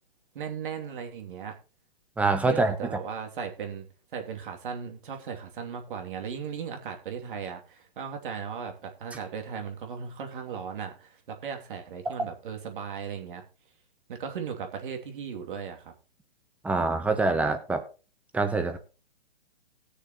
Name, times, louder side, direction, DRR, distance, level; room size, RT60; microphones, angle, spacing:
voice 1, 0.3-1.5 2.5-13.4 14.1-15.9, right 7 dB, 60° right, 2.7 m, -37 dB
voice 2, 2.2-2.8 12.0-12.1 16.6-17.8 18.3-18.8, right 3 dB, 5° right, 0.9 m, -25 dB
19.5 x 6.6 x 3.0 m
hypercardioid pair, 145°, 29 cm